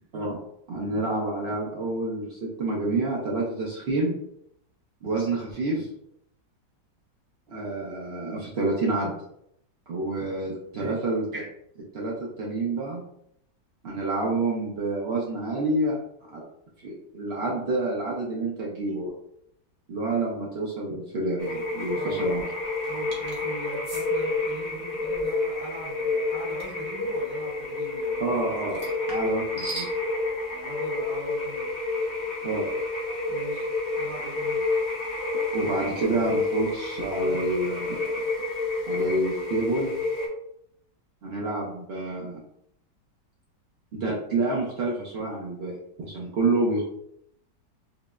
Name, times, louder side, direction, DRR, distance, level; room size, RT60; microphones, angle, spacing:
voice 1, 0.7-4.2 5.0-5.9 7.5-9.1 9.9-11.5 11.9-13.0 13.8-16.0 16.3-16.4 16.8-19.1 19.9-22.4 28.2-28.8 29.1-29.9 32.4-32.7 35.5-38.0 38.9-39.9 41.2-42.4 43.9-46.8, right 2 dB, 80° right, -4 dB, 0.5 m, -28 dB
sound 1, 21.4-40.3, left 3 dB, 50° left, 0.8 m, -29 dB
voice 2, 21.9-22.3 22.9-28.9 30.5-31.7 33.3-33.7 34.0-34.6, right 1 dB, 25° left, -7 dB, 0.6 m, -41 dB
sound 2, 23.1-23.4 23.8-24.1 26.6-26.8 28.7-29.9, right 2 dB, 50° right, 0.7 m, -38 dB
5.0 x 2.0 x 2.3 m, 0.75 s
omnidirectional pair, 1.9 m